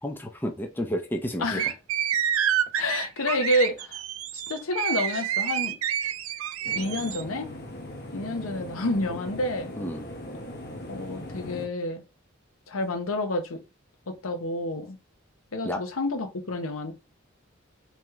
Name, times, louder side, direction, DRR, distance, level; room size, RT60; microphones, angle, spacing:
voice 1, 0.0-1.6 9.8-10.1 15.6-15.8, equal, 10° left, 0.5 m, -31 dB
voice 2, 1.4-1.7 2.8-4.0 4.3-5.8 6.7-7.5 8.1-9.7 10.9-12.0 12.7-13.6 14.1-15.0 15.5-16.9, left 1 dB, 85° left, 0.8 m, -29 dB
sound 1, 1.6-7.2, right 10 dB, 80° right, 0.4 m, -28 dB
sound 2, 6.6-11.7, left 1 dB, 55° left, 0.9 m, -39 dB
3.0 x 3.0 x 3.6 m
head